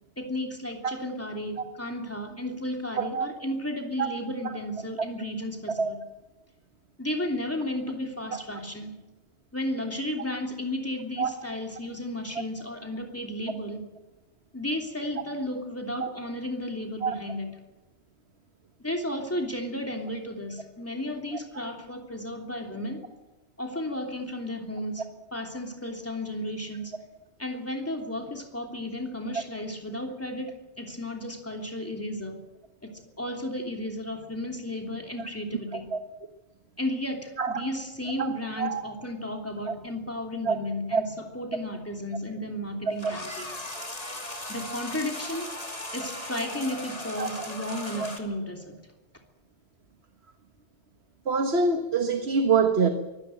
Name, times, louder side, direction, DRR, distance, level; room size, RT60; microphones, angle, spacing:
voice 1, 0.2-6.0 7.0-8.9 9.5-13.8 14.5-17.5 18.8-23.0 23.6-27.0 27.4-32.4 32.8-35.9 36.8-43.6 44.5-45.5 45.9-48.8, left 1 dB, 10° left, 2 dB, 3.1 m, -33 dB
voice 2, 3.0-3.3 4.0-4.1 5.8-5.9 11.2-11.3 16.0-16.1 17.0-17.2 35.9-36.0 37.4-37.6 38.2-38.3 38.6-38.8 39.7-39.8 40.5-40.6 40.9-41.0 47.2-47.5 48.0-48.1 51.3-52.9, right 5 dB, 65° right, 6 dB, 1.6 m, -25 dB
sound 1, 43.0-48.2, left 1 dB, 35° left, 2.8 m, -37 dB
23.0 x 17.5 x 7.8 m, 1.0 s
omnidirectional pair, 1.2 m